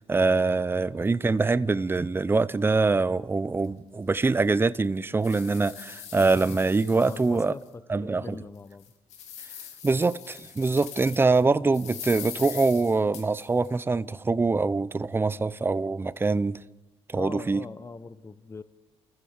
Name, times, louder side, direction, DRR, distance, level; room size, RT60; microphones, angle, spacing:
voice 1, 0.0-7.5 7.9-8.4 9.8-16.6 17.1-17.6, right 3 dB, 20° right, 0.8 m, -24 dB
sound 1, 3.6-3.7 4.2-4.3 4.8-7.7 8.1-8.2 8.7-11.4 11.7-13.7, left 9 dB, 80° left, 2.6 m, -42 dB
voice 2, 6.9-8.9 17.2-18.6, left 4 dB, 25° left, 0.9 m, -41 dB
28.5 x 15.0 x 7.3 m
cardioid pair, 85°, 11 cm